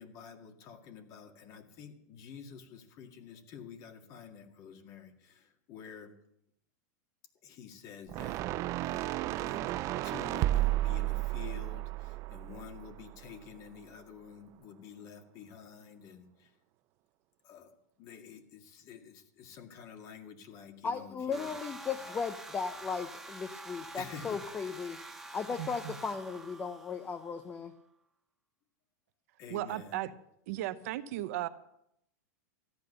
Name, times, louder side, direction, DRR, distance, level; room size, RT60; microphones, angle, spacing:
voice 1, 0.0-6.2 7.4-9.7 10.0-16.5 17.4-21.5 22.0-22.2 23.9-24.4 29.4-30.0, left 7 dB, 40° left, 6 dB, 2.0 m, -49 dB
sound 1, 8.1-13.4, right 16 dB, 35° right, 0.4 m, -33 dB
voice 2, 20.8-25.0 25.3-27.7, left 5 dB, 15° left, 10 dB, 0.7 m, -36 dB
sound 2, 21.3-27.5, right 2 dB, 5° right, 1.3 m, -47 dB
voice 3, 25.6-26.0 29.5-30.1 30.5-31.5, right 14 dB, 60° right, 12 dB, 0.8 m, -36 dB
14.0 x 10.5 x 6.7 m, 0.76 s
supercardioid pair, 145°, 9 cm